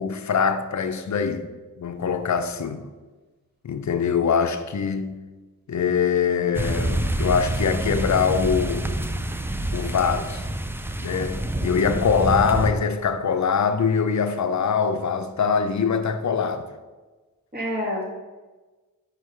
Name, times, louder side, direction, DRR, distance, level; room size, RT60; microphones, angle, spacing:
voice 1, 0.0-1.5 1.8-2.8 3.6-5.2 5.7-8.9 9.7-10.4 11.0-16.7, left 6 dB, 55° left, 0.6 m, -23 dB
sound 1, 6.5-12.7, right 1 dB, 5° right, 0.4 m, -27 dB
voice 2, 11.6-12.0 17.5-18.0, left 1 dB, 30° right, 2.1 m, -29 dB
5.6 x 4.6 x 4.7 m
cardioid pair, 70°, 35 cm